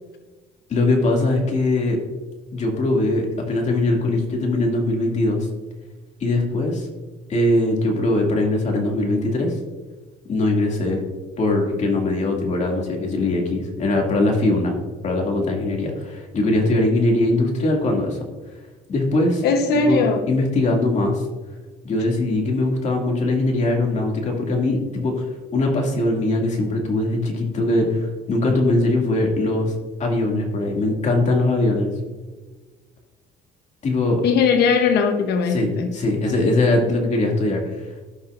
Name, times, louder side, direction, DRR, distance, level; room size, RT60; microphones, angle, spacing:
voice 1, 0.7-2.0 2.5-5.5 6.2-6.9 7.3-9.5 10.3-11.0 11.4-14.7 15.0-18.2 18.9-19.5 19.9-21.2 21.8-25.3 25.5-29.7 30.0-31.9 33.8-34.2 35.5-37.8, left 2 dB, 45° left, 0 dB, 2.4 m, -21 dB
voice 2, 19.4-20.3 34.2-35.9, left 5 dB, 75° left, 5 dB, 0.9 m, -19 dB
15.5 x 5.8 x 2.5 m, 1.3 s
cardioid pair, 110°, 17 cm